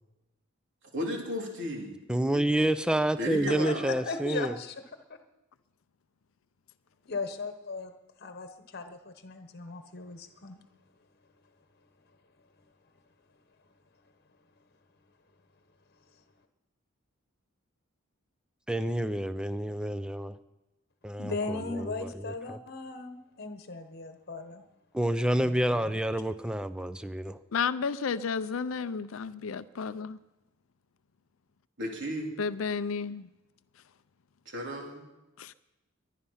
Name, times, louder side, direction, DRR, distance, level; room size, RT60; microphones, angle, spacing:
voice 1, 0.9-1.9 2.3-2.6 3.2-3.9 31.8-32.3 34.5-35.0, equal, 60° right, 3.7 m, -34 dB
voice 2, 2.1-4.6 18.7-20.4 21.0-22.6 24.9-27.4, right 1 dB, 5° right, 0.6 m, -29 dB
voice 3, 3.5-4.8 7.1-7.9 8.2-10.6 21.2-24.6 25.4-25.9, left 3 dB, 50° left, 1.1 m, -37 dB
voice 4, 27.5-30.2 32.4-33.3 35.4-35.5, left 5 dB, 75° left, 0.5 m, -32 dB
22.0 x 10.0 x 5.7 m
head